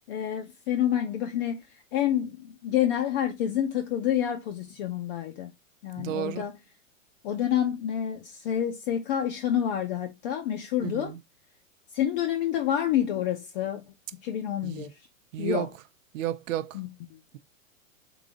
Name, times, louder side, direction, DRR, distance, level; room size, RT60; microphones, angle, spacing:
voice 1, 0.1-1.6 1.9-5.5 5.8-6.5 7.2-11.1 11.9-13.8 14.2-14.9 15.4-15.7 16.7-17.2, left 10 dB, 40° left, 0.7 m, -28 dB
voice 2, 6.0-6.4 10.8-11.2 14.6-14.9 15.3-15.7 16.1-16.8, right 12 dB, 65° right, 0.6 m, -32 dB
3.9 x 2.7 x 4.7 m
supercardioid pair, 150°, 41 cm